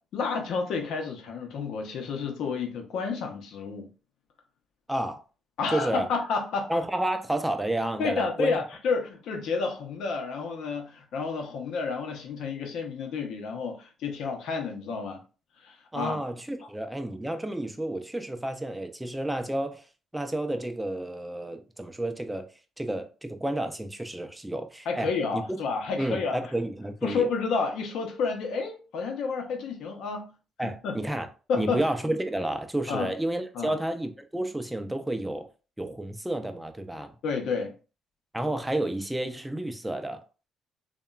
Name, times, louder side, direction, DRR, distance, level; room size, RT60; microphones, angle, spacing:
voice 1, 0.1-3.9 5.6-6.7 8.0-15.2 15.6-16.2 24.9-26.4 27.0-30.3 30.6-31.0 31.5-31.8 32.9-33.1 33.5-33.7 37.2-37.7, left 4 dB, 80° left, 0.6 m, -30 dB
voice 2, 4.9-5.2 5.7-6.1 6.7-8.6 15.9-19.8 20.1-22.5 22.8-25.4 26.0-27.3 30.6-31.3 31.6-35.5 35.8-37.1 38.3-40.2, right 1 dB, 10° right, 0.4 m, -31 dB
2.9 x 2.2 x 2.2 m
cardioid pair, 85°, 0 cm